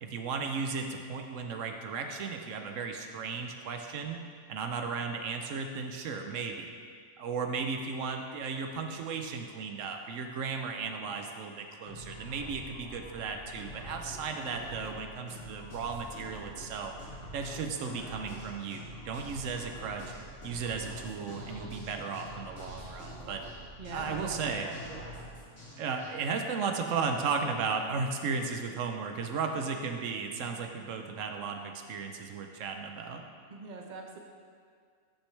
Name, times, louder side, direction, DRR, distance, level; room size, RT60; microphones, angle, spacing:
voice 1, 0.0-4.2 4.5-6.7 7.2-16.9 17.3-20.1 20.4-23.4 23.9-24.7 25.8-33.2, right 5 dB, 90° right, 4 dB, 1.1 m, -35 dB
sound 1, 11.9-26.1, equal, 70° left, 2.6 m, -45 dB
voice 2, 23.8-24.4 24.6-25.0 33.5-34.2, right 3 dB, 40° right, 1 dB, 1.0 m, -43 dB
13.5 x 6.1 x 3.3 m, 2.1 s
omnidirectional pair, 1.3 m